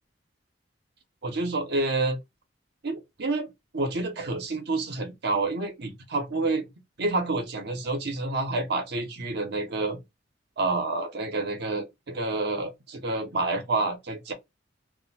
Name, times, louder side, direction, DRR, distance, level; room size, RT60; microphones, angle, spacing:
voice 1, 1.2-2.2 2.8-6.6 7.0-10.0 10.6-14.3, right 2 dB, 60° right, 0.8 m, -28 dB
2.5 x 2.2 x 4.0 m
head